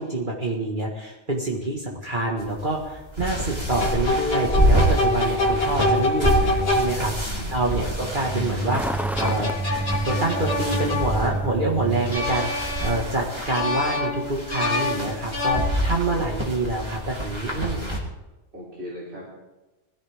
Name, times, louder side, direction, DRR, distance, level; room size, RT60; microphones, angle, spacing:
voice 1, 0.0-9.5 10.0-17.9, right 2 dB, 50° right, -2 dB, 2.0 m, -27 dB
sound 1, 2.4-18.0, right 1 dB, 25° right, 2.9 m, -28 dB
sound 2, 3.7-7.3 8.9-11.6 12.1-13.2 13.5-16.1, left 2 dB, 65° left, 2.5 m, -26 dB
Truck, 4.6-12.2, right 2 dB, ahead, 0.6 m, -30 dB
voice 2, 7.2-7.9 18.5-19.2, left 1 dB, 75° right, -5 dB, 3.8 m, -38 dB
21.5 x 15.5 x 3.6 m, 1.1 s
omnidirectional pair, 1.1 m